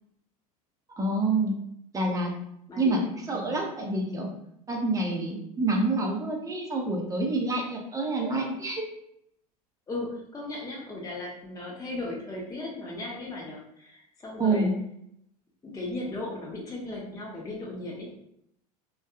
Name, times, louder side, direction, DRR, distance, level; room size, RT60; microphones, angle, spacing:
voice 1, 1.0-1.6 1.9-2.3 2.8-3.0 3.3-4.3 4.7-8.8 14.4-14.7, right 2 dB, 15° right, 0 dB, 0.7 m, -27 dB
voice 2, 2.7-3.6 9.9-14.7 15.6-18.1, left 2 dB, 15° left, -4 dB, 0.7 m, -37 dB
2.6 x 2.3 x 2.4 m, 0.75 s
hypercardioid pair, 85°, 20 cm